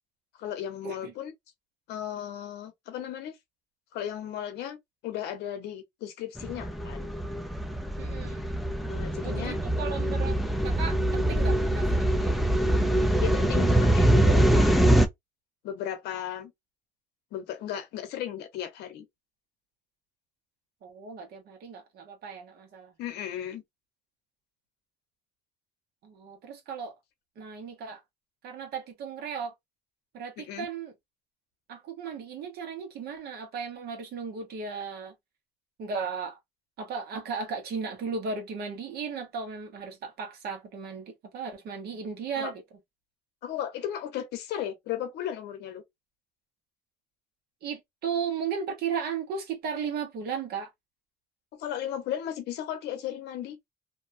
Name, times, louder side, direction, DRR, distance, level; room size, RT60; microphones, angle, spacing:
voice 1, 0.4-1.3 1.9-3.4 3.9-4.8 5.0-7.1 8.9-9.6 13.2-15.0 15.6-16.5 17.3-19.0 23.0-23.6 30.4-30.7 42.4-42.5 43.4-45.8 51.6-53.6, left 10 dB, 80° left, 0.8 m, -35 dB
sound 1, 6.4-15.1, right 1 dB, ahead, 0.3 m, -24 dB
voice 2, 8.0-8.5 9.2-10.4 10.6-12.6 20.8-22.9 26.0-27.0 27.4-28.0 28.4-29.5 30.1-30.9 31.7-35.1 35.8-36.4 36.8-42.6 47.6-50.7, right 6 dB, 65° right, 1.0 m, -35 dB
2.6 x 2.3 x 2.6 m
cardioid pair, 110°, 17 cm